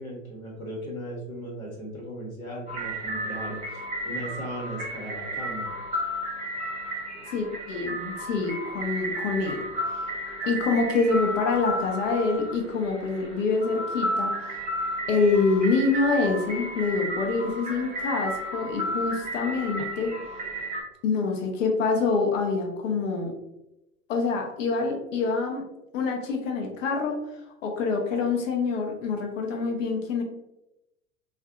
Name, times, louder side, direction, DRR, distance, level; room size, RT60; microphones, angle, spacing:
voice 1, 0.0-5.7, equal, 85° left, -3 dB, 1.1 m, -37 dB
sound 1, 2.7-20.8, equal, 15° right, 0.8 m, -33 dB
voice 2, 7.3-9.6 10.5-14.6 15.1-20.1 21.0-23.3 24.1-25.6 25.9-27.2 27.6-30.2, left 4 dB, 65° left, 1 dB, 0.7 m, -26 dB
3.4 x 2.2 x 2.3 m, 0.90 s
figure-of-eight pair, 90°, 41 cm